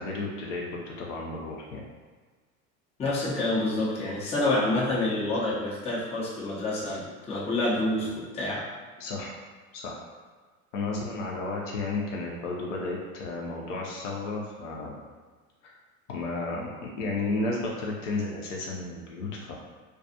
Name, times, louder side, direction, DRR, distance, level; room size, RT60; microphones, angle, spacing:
voice 1, 0.0-1.8 9.0-9.3 9.7-9.9 10.7-15.0 15.6-15.7 16.1-19.5, left 3 dB, 55° left, -2 dB, 0.6 m, -33 dB
voice 2, 3.0-8.7, left 2 dB, 15° left, -7 dB, 0.6 m, -28 dB
2.3 x 2.3 x 2.6 m, 1.4 s
figure-of-eight pair, 80°, 44 cm